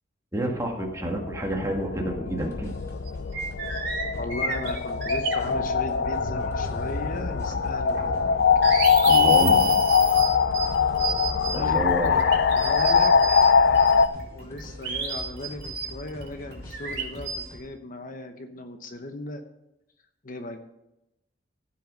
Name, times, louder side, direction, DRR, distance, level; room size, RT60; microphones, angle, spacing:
voice 1, 0.3-2.7 9.0-9.7 11.5-12.1, right 1 dB, 15° right, 0 dB, 1.9 m, -28 dB
sound 1, 0.8-14.1, left 6 dB, 65° left, 0.5 m, -22 dB
sound 2, 2.3-17.6, left 1 dB, 15° left, 2.9 m, -43 dB
sound 3, 2.7-2.8 3.1-7.6 7.9-13.4 13.7-17.4, right 5 dB, 70° right, 3.4 m, -32 dB
voice 2, 4.1-8.1 11.4-12.2 12.5-19.4 20.2-20.6, left 2 dB, 45° left, 7 dB, 0.9 m, -37 dB
15.5 x 5.8 x 5.2 m, 0.89 s
head